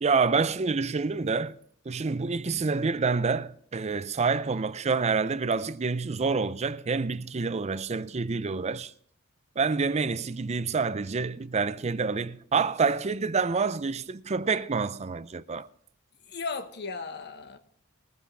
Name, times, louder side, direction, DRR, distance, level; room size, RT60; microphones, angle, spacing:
voice 1, 0.0-1.6 1.9-8.9 9.6-15.7, right 4 dB, 30° right, 0.5 m, -27 dB
voice 2, 16.3-17.6, left 4 dB, 50° left, 1.2 m, -36 dB
21.5 x 10.0 x 3.4 m
head